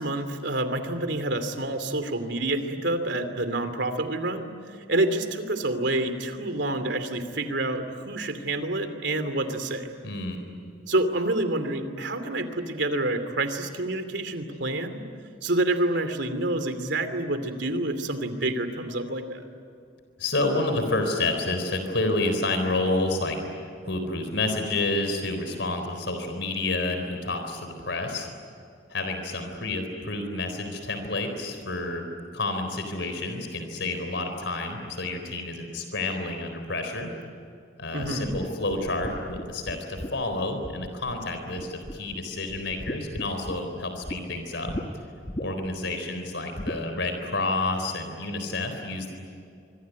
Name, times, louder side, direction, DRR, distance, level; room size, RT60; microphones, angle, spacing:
voice 1, 0.0-4.5 4.9-9.9 10.9-15.0 15.4-19.5 37.9-38.3, right 2 dB, 70° right, 8 dB, 2.9 m, -28 dB
voice 2, 10.0-10.4 20.2-23.4 23.8-28.3 28.9-32.1 32.3-37.1 37.8-44.8 45.4-49.1, left 2 dB, 70° left, 6 dB, 4.1 m, -29 dB
sound 1, 38.0-41.3 41.6-42.2 42.5-44.2 44.7-44.9 45.3-45.8 46.6-46.8, equal, 30° left, 1.5 m, -36 dB
25.5 x 24.5 x 9.5 m, 2.4 s
head